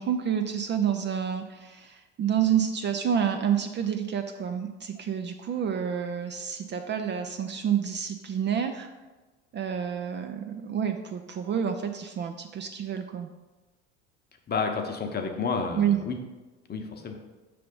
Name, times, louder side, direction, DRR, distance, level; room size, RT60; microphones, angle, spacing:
voice 1, 0.0-8.9 9.5-13.3 15.8-16.0, right 8 dB, 35° right, 6 dB, 0.4 m, -28 dB
voice 2, 14.5-16.2 16.7-17.2, left 4 dB, 30° left, 4 dB, 0.9 m, -30 dB
5.7 x 3.4 x 5.3 m, 1.2 s
hypercardioid pair, 75°, 34 cm